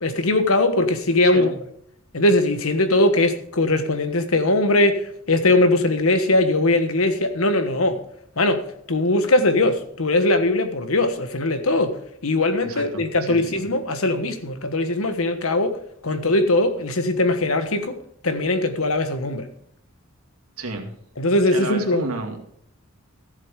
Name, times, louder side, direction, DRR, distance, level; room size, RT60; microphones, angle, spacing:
voice 1, 0.0-1.5 2.1-8.0 8.4-15.8 16.0-18.0 18.2-19.5 21.2-22.0, left 2 dB, 80° left, 1.4 m, -20 dB
voice 2, 1.2-1.6 12.6-13.7 20.6-20.9 21.5-22.4, right 2 dB, 90° right, 2.4 m, -32 dB
14.0 x 7.9 x 5.2 m
head